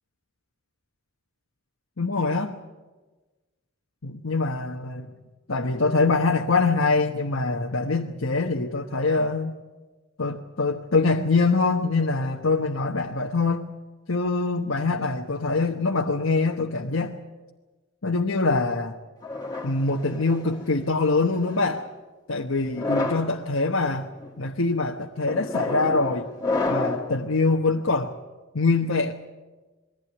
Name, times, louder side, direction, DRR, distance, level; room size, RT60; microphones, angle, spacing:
voice 1, 2.0-2.6 4.0-5.1 5.5-9.6 10.2-13.7 14.1-17.2 18.0-19.0 19.6-21.8 22.3-24.1 24.4-26.3 26.7-28.2 28.5-29.1, left 3 dB, 75° left, 2 dB, 1.1 m, -24 dB
sound 1, 19.2-20.6 21.4-21.8 22.6-23.3 24.0-24.3 25.3-27.1, left 3 dB, 20° left, 2.2 m, -29 dB
21.5 x 15.5 x 9.8 m, 1.3 s
head